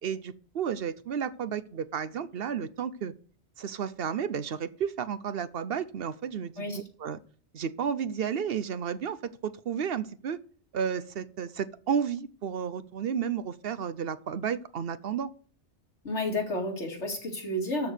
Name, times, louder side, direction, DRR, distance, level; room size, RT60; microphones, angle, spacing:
voice 1, 0.0-3.1 3.6-7.2 7.5-10.4 10.7-15.3, right 7 dB, 60° right, 15 dB, 0.8 m, -32 dB
voice 2, 16.0-17.9, left 1 dB, 85° left, 1 dB, 2.8 m, -31 dB
13.0 x 4.6 x 6.7 m, 0.43 s
omnidirectional pair, 1.2 m